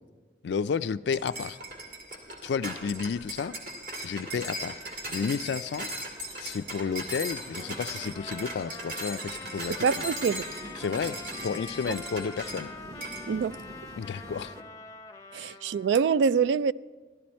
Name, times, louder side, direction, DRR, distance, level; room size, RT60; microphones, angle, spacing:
voice 1, 0.4-1.6 2.4-3.6 4.0-5.9 6.4-9.9 10.8-11.2 11.4-12.7 14.0-14.5 15.4-15.5, left 6 dB, 75° left, 0.3 m, -32 dB
sound 1, 1.1-12.7 13.0-13.3, right 1 dB, 50° right, 2.1 m, -38 dB
Train, 1.2-14.6, right 1 dB, 20° right, 0.7 m, -49 dB
Trumpet, 7.6-15.9, left 4 dB, 20° left, 0.6 m, -45 dB
voice 2, 9.8-10.4 13.3-13.6 15.3-16.7, right 6 dB, 80° right, 0.3 m, -25 dB
15.5 x 12.0 x 4.3 m
head